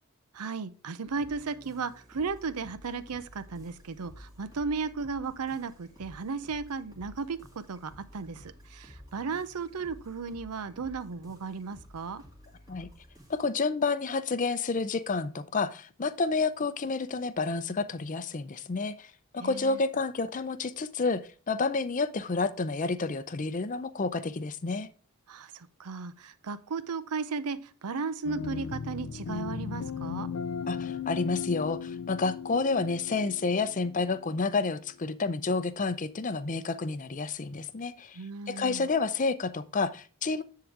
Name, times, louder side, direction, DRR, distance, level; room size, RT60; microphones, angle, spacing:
voice 1, 0.3-12.2 19.4-19.8 25.3-30.3 38.1-38.9, right 4 dB, 90° right, 14 dB, 0.6 m, -35 dB
sound 1, 1.0-13.5, equal, 15° right, 2.3 m, -52 dB
voice 2, 13.3-24.9 30.7-40.4, left 4 dB, 35° left, 14 dB, 0.5 m, -30 dB
sound 2, 28.2-34.8, left 6 dB, 85° left, 0.5 m, -37 dB
10.0 x 3.8 x 4.7 m, 0.38 s
head